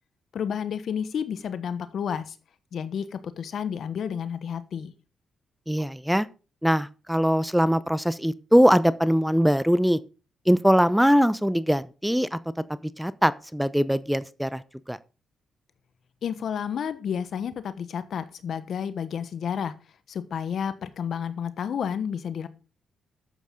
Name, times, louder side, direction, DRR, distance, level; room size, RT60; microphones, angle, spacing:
voice 1, 0.3-2.4 2.7-4.9 16.2-19.7 20.1-22.5, left 7 dB, 65° left, 1.1 m, -31 dB
voice 2, 5.7-6.3 6.6-10.0 10.5-12.4 13.0-14.6 14.9-15.0, equal, 5° right, 0.8 m, -21 dB
12.0 x 8.2 x 3.8 m
supercardioid pair, 60°, 0 cm